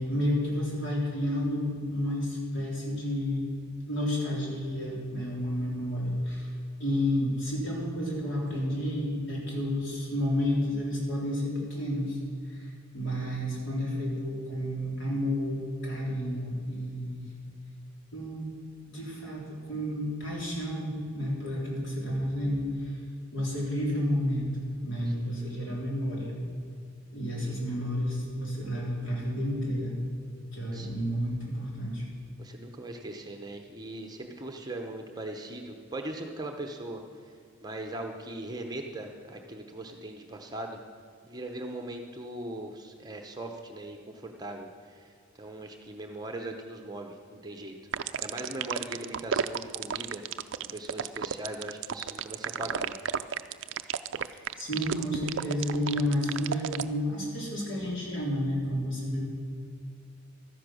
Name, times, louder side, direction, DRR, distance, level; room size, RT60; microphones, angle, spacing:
voice 1, 0.0-3.5 3.9-6.5 6.8-12.2 12.5-17.3 18.1-18.5 18.8-23.0 23.3-24.5 24.8-26.4 27.1-30.0 30.5-32.0 54.5-59.3, equal, 60° left, -3 dB, 3.5 m, -31 dB
voice 2, 25.1-25.5 27.4-27.6 30.7-31.0 32.4-37.3 37.6-40.8 41.2-47.7 48.2-50.2 50.6-52.9, right 1 dB, 20° right, 3 dB, 0.8 m, -40 dB
sound 1, 47.9-56.8, right 7 dB, 60° right, 0.4 m, -32 dB
13.0 x 10.0 x 6.3 m, 2.2 s
head